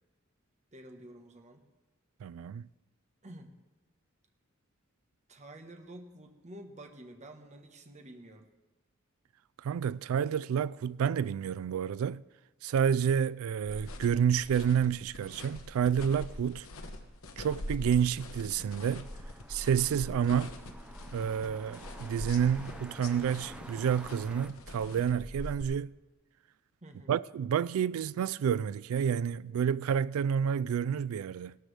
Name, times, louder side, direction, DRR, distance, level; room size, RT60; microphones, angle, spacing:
voice 1, 0.7-1.7 3.2-3.5 5.3-8.5 26.8-27.2, right 1 dB, 35° right, 1.1 m, -49 dB
voice 2, 2.2-2.7 9.6-12.2 12.6-16.7 17.4-19.0 19.5-20.5 21.1-25.9 27.1-31.6, right 8 dB, 80° right, 0.3 m, -29 dB
sound 1, 13.6-25.6, left 1 dB, 80° left, 1.2 m, -43 dB
sound 2, 18.7-24.5, equal, 5° right, 0.6 m, -50 dB
16.5 x 12.5 x 3.3 m
head